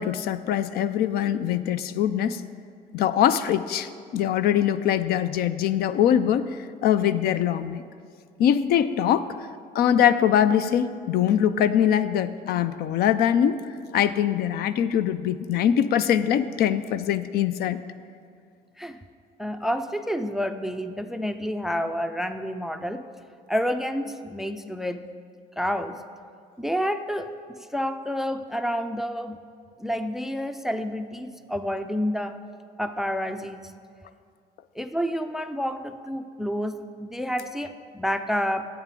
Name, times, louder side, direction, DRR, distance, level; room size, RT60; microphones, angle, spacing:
voice 1, 0.0-2.4 2.9-7.8 8.4-9.4 9.7-13.6 13.9-17.8, left 9 dB, 65° left, 13 dB, 0.4 m, -23 dB
voice 2, 19.4-23.0 23.5-25.0 25.6-26.0 26.6-29.4 29.8-32.4 32.8-33.7 34.8-38.7, equal, ahead, 9 dB, 0.3 m, -29 dB
11.0 x 8.3 x 3.7 m, 2.2 s
cardioid pair, 110°, 17 cm